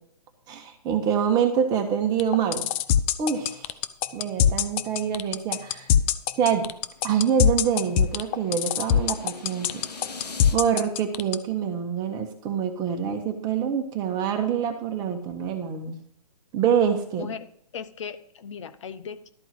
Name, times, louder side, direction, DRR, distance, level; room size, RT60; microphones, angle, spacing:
voice 1, 0.5-2.7 3.2-3.8 4.1-5.9 6.4-6.7 7.0-9.7 10.5-16.0 16.5-17.3, right 8 dB, 20° right, 6 dB, 1.3 m, -25 dB
sound 1, 2.2-11.4, left 9 dB, 20° left, 0.4 m, -21 dB
sound 2, 6.3-10.6, left 4 dB, 80° left, 1.8 m, -43 dB
voice 2, 17.7-19.3, left 7 dB, 50° left, 12 dB, 1.0 m, -37 dB
12.5 x 4.5 x 7.9 m, 0.65 s
hypercardioid pair, 145°, 21 cm